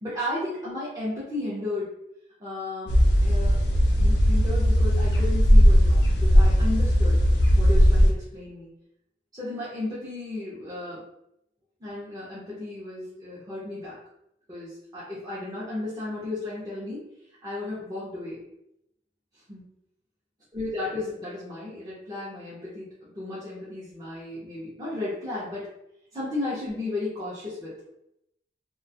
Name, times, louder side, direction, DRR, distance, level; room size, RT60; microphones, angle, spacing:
voice 1, 0.0-1.9 2.4-3.6 4.0-7.2 7.6-8.7 9.3-11.0 11.8-14.0 14.5-17.1 17.4-18.4 19.5-19.7 20.5-25.7 26.1-27.7, left 2 dB, 20° right, -9 dB, 0.5 m, -34 dB
sound 1, 2.9-8.1, equal, 80° left, 0.5 m, -18 dB
2.3 x 2.2 x 2.6 m, 0.81 s
head